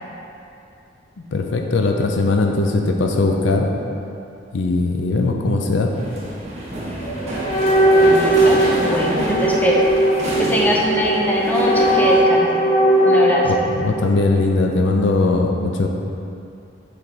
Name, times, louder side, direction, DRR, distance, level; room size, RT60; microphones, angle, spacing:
voice 1, 1.3-3.7 4.5-5.9 10.5-10.6 13.4-15.9, left 3 dB, 65° left, 2 dB, 0.5 m, -19 dB
sound 1, 5.9-12.2, right 1 dB, 35° right, 1.0 m, -28 dB
sound 2, 7.0-13.5, right 1 dB, 30° left, 0.9 m, -18 dB
voice 2, 8.0-9.8 10.5-12.6 13.0-13.4, left 1 dB, 10° left, -3 dB, 0.6 m, -22 dB
7.4 x 3.3 x 4.0 m, 2.6 s
head